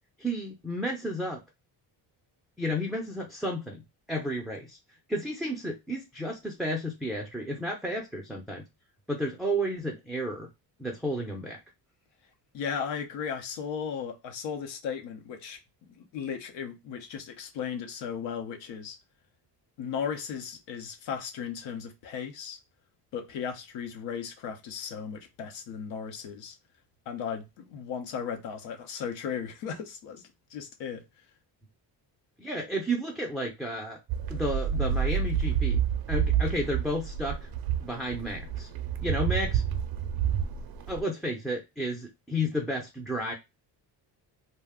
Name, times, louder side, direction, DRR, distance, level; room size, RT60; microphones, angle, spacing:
voice 1, 0.2-1.4 2.6-3.8 4.1-4.8 5.1-8.6 9.1-10.5 10.8-11.6 32.4-34.0 34.3-35.8 36.1-37.5 37.8-38.7 39.0-39.6 40.9-43.3, equal, ahead, 0.3 m, -32 dB
voice 2, 12.5-15.6 16.0-19.0 19.8-22.6 23.1-26.6 27.1-30.2 30.5-31.0, left 7 dB, 90° left, 0.7 m, -36 dB
sound 1, 34.1-41.0, right 8 dB, 55° right, 0.5 m, -29 dB
2.4 x 2.1 x 3.5 m
cardioid pair, 120°, 43 cm